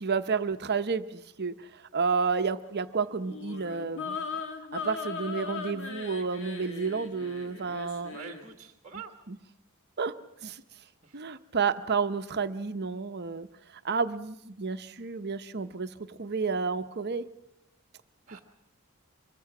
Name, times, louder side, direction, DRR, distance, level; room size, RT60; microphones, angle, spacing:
voice 1, 0.0-4.2 4.7-8.2 9.3-9.4 10.0-10.1 10.4-10.6 11.1-13.5 13.8-17.2, right 5 dB, 50° right, 10 dB, 0.8 m, -31 dB
sound 1, 3.2-8.5, left 4 dB, 60° left, 2.3 m, -38 dB
voice 2, 8.1-9.1 11.0-11.2 18.3-18.4, right 6 dB, 35° right, 5 dB, 1.5 m, -45 dB
24.5 x 23.0 x 6.0 m, 0.86 s
head